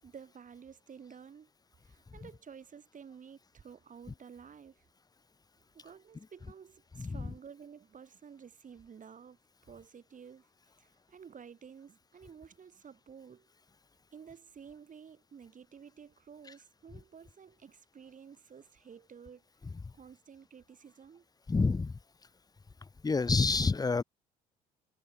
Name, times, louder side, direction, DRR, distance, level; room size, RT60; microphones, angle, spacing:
voice 1, 0.0-1.5 1.9-4.9 5.7-9.4 9.7-10.5 10.8-13.5 14.1-21.3, right 7 dB, 40° right, 7.2 m, -52 dB
voice 2, 7.0-7.3 19.6-19.9 21.5-22.0 23.0-24.0, left 4 dB, 20° left, 1.0 m, -29 dB
hypercardioid pair, 60°, 19 cm